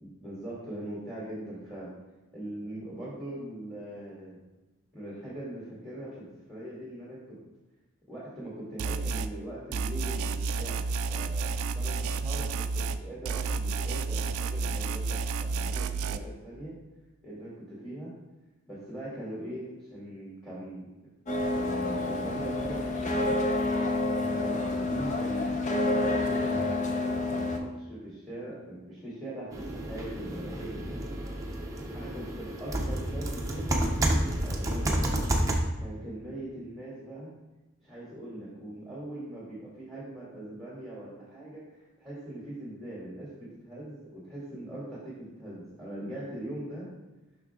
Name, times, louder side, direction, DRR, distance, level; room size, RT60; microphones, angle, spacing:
voice 1, 0.0-1.9 2.3-4.4 4.9-7.4 8.1-16.8 17.2-18.1 18.7-20.9 21.5-23.6 24.3-31.1 31.9-35.3 35.8-37.3 37.8-46.9, right 1 dB, ahead, -9 dB, 2.5 m, -41 dB
sound 1, 8.8-9.3 9.7-13.0 13.3-16.2, right 4 dB, 75° right, 0.4 m, -31 dB
sound 2, 21.3-27.6, left 2 dB, 35° left, 0.8 m, -28 dB
sound 3, 29.5-35.6, right 1 dB, 15° right, 0.8 m, -30 dB
6.3 x 5.8 x 3.7 m, 1.1 s
head